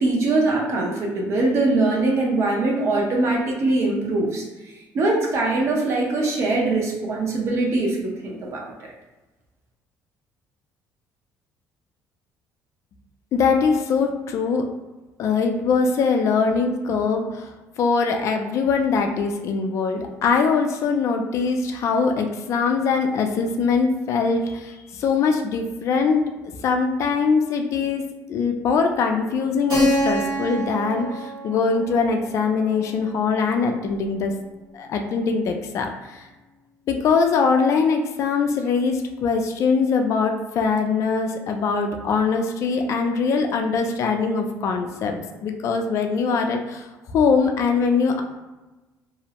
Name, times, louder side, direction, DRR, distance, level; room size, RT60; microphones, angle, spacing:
voice 1, 0.0-4.4 4.9-8.6, right 2 dB, 45° right, -1 dB, 0.7 m, -22 dB
voice 2, 13.3-14.7 15.2-17.5 17.8-26.3 26.6-28.0 28.3-34.3 34.7-36.3 36.9-48.2, left 5 dB, 55° left, 4 dB, 0.3 m, -22 dB
Keyboard (musical), 29.7-34.2, equal, 90° right, 1.2 m, -28 dB
2.5 x 2.0 x 2.8 m, 1.1 s
cardioid pair, 135°, 6 cm